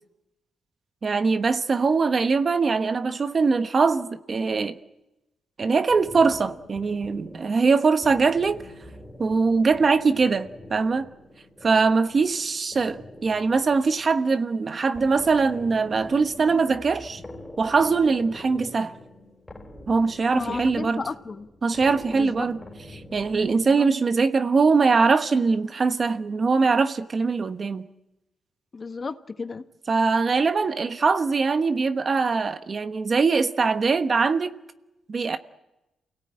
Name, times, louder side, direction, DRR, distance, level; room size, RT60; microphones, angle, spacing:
voice 1, 1.0-4.8 5.6-8.6 9.2-11.1 11.6-17.2 17.6-18.9 19.9-21.0 21.6-22.6 23.1-27.8 29.9-34.5 35.1-35.4, right 4 dB, 40° right, 1.2 m, -22 dB
sound 1, 5.9-24.0, left 1 dB, 15° left, 4.1 m, -45 dB
voice 2, 20.3-21.5 22.1-22.5 23.5-23.9 28.7-29.6, left 4 dB, 35° left, 1.3 m, -33 dB
28.5 x 18.0 x 8.8 m
cardioid pair, 120°, 0 cm